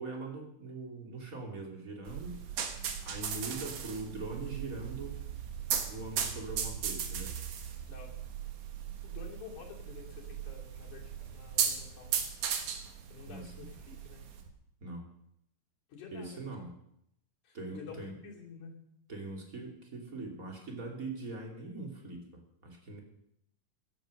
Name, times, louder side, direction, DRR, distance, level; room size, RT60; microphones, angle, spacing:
voice 1, 0.0-2.7 3.0-5.2 5.7-7.3 13.3-13.7 14.8-15.1 16.1-16.7 17.5-18.2 19.1-23.0, right 2 dB, 25° right, 1 dB, 3.0 m, -42 dB
sound 1, 2.1-14.5, right 8 dB, 80° right, 3.0 m, -37 dB
voice 2, 9.0-12.2 13.1-14.2 15.9-16.4 17.4-18.7, left 6 dB, 70° left, -3 dB, 4.2 m, -49 dB
15.5 x 10.5 x 6.5 m, 0.75 s
omnidirectional pair, 3.6 m